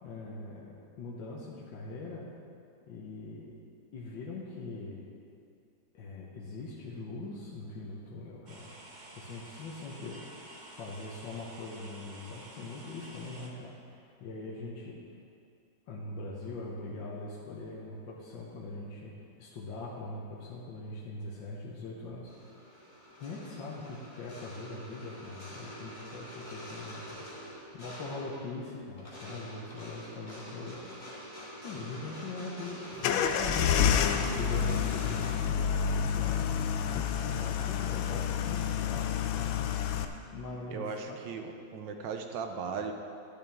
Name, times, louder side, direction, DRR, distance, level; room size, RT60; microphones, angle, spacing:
voice 1, 0.0-2.3 2.9-3.5 3.9-5.1 5.9-8.7 9.2-10.2 10.7-15.0 15.9-19.1 19.4-22.3 23.2-27.2 27.7-30.8 31.6-36.6 37.1-39.7 40.3-41.2, left 3 dB, 75° left, -5 dB, 1.8 m, -42 dB
sound 1, 8.5-13.5, right 1 dB, 35° right, 0.8 m, -50 dB
sound 2, 22.3-35.3, equal, 25° left, 1.9 m, -46 dB
sound 3, 33.0-40.0, left 8 dB, 90° left, 1.4 m, -29 dB
voice 2, 40.7-42.9, right 5 dB, 75° right, 5 dB, 1.5 m, -37 dB
12.0 x 10.0 x 3.6 m, 2.4 s
omnidirectional pair, 2.1 m